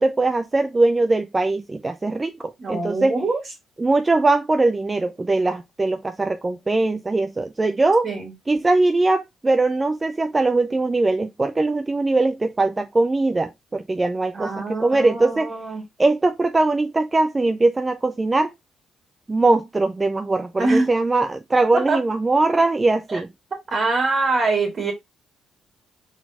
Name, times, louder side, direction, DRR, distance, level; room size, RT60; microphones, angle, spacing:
voice 1, 0.0-3.2 3.8-8.1 8.5-15.5 16.0-18.5 19.3-23.3, right 2 dB, 20° right, 0.4 m, -21 dB
voice 2, 2.6-3.4 8.0-8.3 14.3-15.8 20.6-20.9 21.7-22.0 23.1-23.2 23.5-24.9, right 3 dB, 45° right, 1.8 m, -24 dB
4.0 x 4.0 x 2.8 m
cardioid pair, 90°, 0 cm